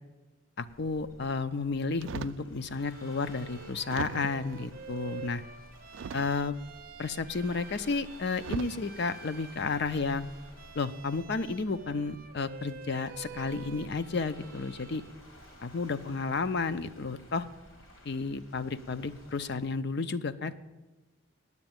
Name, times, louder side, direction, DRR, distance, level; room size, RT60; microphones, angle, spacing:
Waves surf, 0.6-19.6, equal, 75° left, 2.9 m, -54 dB
voice 1, 0.6-5.4 6.1-6.5 7.0-10.3 10.7-15.0 15.6-17.5 18.0-20.5, left 4 dB, 55° left, 12 dB, 0.5 m, -32 dB
sound 1, 2.0-2.5 3.2-3.3 3.9-4.5 5.9-6.6 7.8-7.9 8.4-8.8 9.5-9.8, right 6 dB, 60° right, 0.3 m, -39 dB
Bowed string instrument, 2.7-15.2, right 6 dB, 45° right, 0.7 m, -48 dB
9.6 x 7.9 x 9.0 m, 1.2 s
head